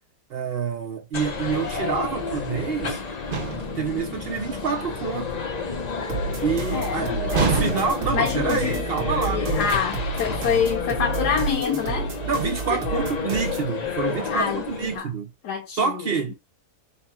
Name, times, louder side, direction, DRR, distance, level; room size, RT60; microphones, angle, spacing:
voice 1, 0.3-3.0 3.6-5.4 6.4-9.4 12.3-15.3 15.8-16.3, right 5 dB, 60° right, 0.6 m, -27 dB
sound 1, 1.1-15.0, left 4 dB, 45° left, 0.5 m, -30 dB
sound 2, 3.3-3.9 7.3-8.2, right 4 dB, 40° right, 0.9 m, -26 dB
sound 3, 6.1-13.7, right 5 dB, 85° right, 1.6 m, -31 dB
voice 2, 6.7-8.8 9.2-12.1 12.7-12.8 14.3-14.7 14.9-15.1 15.4-16.0, left 7 dB, 80° left, 1.4 m, -26 dB
4.1 x 2.2 x 4.2 m
omnidirectional pair, 1.7 m